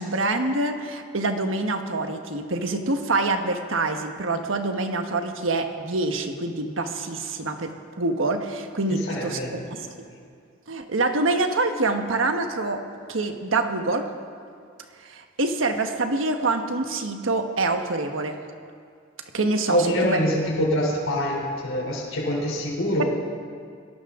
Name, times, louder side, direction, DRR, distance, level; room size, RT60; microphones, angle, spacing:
voice 1, 0.0-9.4 9.8-9.9 10.7-12.8 13.1-14.1 15.0-18.4 19.3-20.2, right 2 dB, 75° right, 6 dB, 1.3 m, -26 dB
voice 2, 8.9-9.9 19.7-23.0, equal, 75° left, -2 dB, 3.5 m, -25 dB
21.5 x 17.5 x 3.7 m, 2.2 s
head